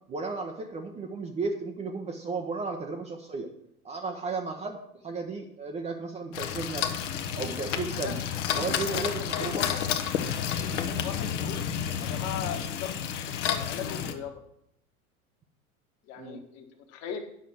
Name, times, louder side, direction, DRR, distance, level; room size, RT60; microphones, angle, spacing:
voice 1, 0.1-3.5 3.8-4.8 5.0-7.0 7.4-8.2 8.5-9.1 9.4-9.6 10.4-10.5 16.2-16.4, right 4 dB, 15° right, 3 dB, 0.7 m, -34 dB
sound 1, 6.3-14.1, left 8 dB, 55° left, 1.0 m, -31 dB
voice 2, 8.9-9.9 10.6-11.6 12.0-14.4 16.1-17.2, left 8 dB, 35° left, 4 dB, 1.5 m, -38 dB
9.6 x 6.2 x 5.9 m, 0.74 s
figure-of-eight pair, 90°, 44 cm